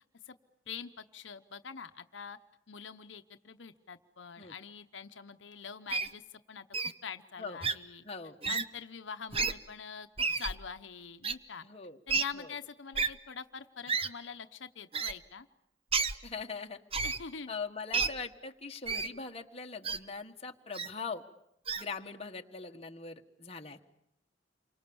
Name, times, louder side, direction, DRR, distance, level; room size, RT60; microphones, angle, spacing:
voice 1, 0.7-2.4 2.7-6.7 7.0-8.0 8.5-10.1 10.4-11.6 12.1-15.5 17.0-17.5, left 6 dB, 80° left, 8 dB, 0.9 m, -44 dB
Wild animals, 5.9-6.1 6.7-6.9 7.6-7.7 8.4-8.6 9.3-9.5 10.2-10.5 11.2-11.3 12.1-12.2 12.9-13.1 13.9-14.1 14.9-15.1 15.9-16.1 16.9-17.2 17.9-18.1 18.9-19.1 19.8-20.0 20.7-20.9 21.7-21.8, right 5 dB, 30° right, 1.0 m, -30 dB
voice 2, 8.0-8.4 11.6-12.0 12.3-12.5 16.2-16.8 17.5-21.2 21.8-23.8, left 4 dB, 35° left, 3 dB, 1.5 m, -41 dB
28.5 x 24.5 x 7.1 m, 0.79 s
head